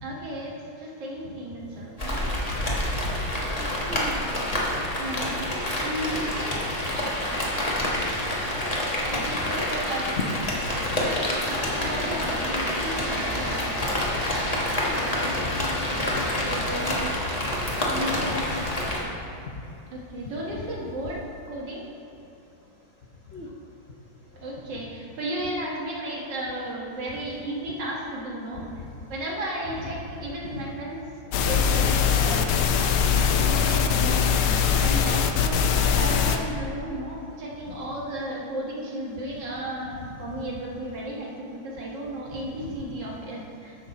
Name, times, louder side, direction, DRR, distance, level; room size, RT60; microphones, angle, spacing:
voice 1, 0.0-2.3 5.0-5.4 5.8-6.7 9.1-10.2 11.0-13.6 17.9-18.2 19.9-21.2 21.5-21.8 24.3-28.6 29.1-31.0 31.5-32.5 33.1-43.8, right 1 dB, 60° right, -3 dB, 2.0 m, -34 dB
Rain, 2.0-19.0, left 1 dB, 20° left, 1.1 m, -27 dB
voice 2, 3.1-4.2 6.6-6.7 9.3-9.4 10.9-11.0 13.4-13.5 14.6-17.0 18.0-18.9 23.3-23.5 28.8-28.9 29.8-29.9 30.4-30.7 33.3-33.5 37.7-37.8 40.0-40.1 42.3-42.7, left 3 dB, 70° left, -2 dB, 0.6 m, -37 dB
sound 1, 31.3-36.4, left 7 dB, 85° left, 1.5 m, -22 dB
12.0 x 6.4 x 4.2 m, 2.8 s
omnidirectional pair, 2.3 m